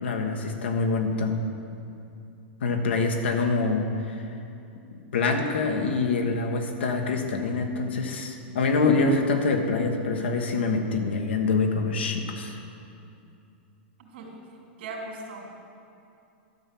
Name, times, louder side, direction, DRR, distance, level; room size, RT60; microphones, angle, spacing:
voice 1, 0.0-1.3 2.6-4.2 5.1-12.6, left 3 dB, 90° left, 3 dB, 1.4 m, -25 dB
voice 2, 14.0-14.3 14.8-15.5, right 3 dB, 75° right, 0 dB, 2.9 m, -38 dB
12.0 x 5.6 x 7.6 m, 2.6 s
hypercardioid pair, 135°, 6 cm